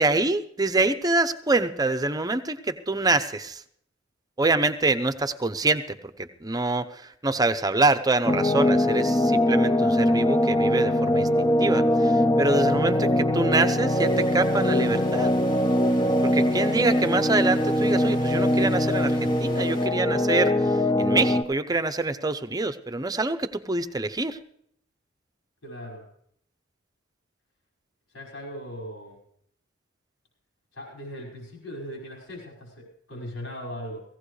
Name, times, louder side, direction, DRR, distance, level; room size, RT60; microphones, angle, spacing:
voice 1, 0.0-3.6 4.4-15.3 16.2-24.4, right 2 dB, 20° right, 10 dB, 0.8 m, -25 dB
sound 1, 8.3-21.4, left 1 dB, 20° left, 0.7 m, -22 dB
sound 2, 13.9-19.9, left 1 dB, 45° left, 2.3 m, -40 dB
voice 2, 25.6-26.0 28.1-29.2 30.7-34.0, equal, 80° left, 0 dB, 5.5 m, -38 dB
18.0 x 16.5 x 3.3 m, 0.67 s
head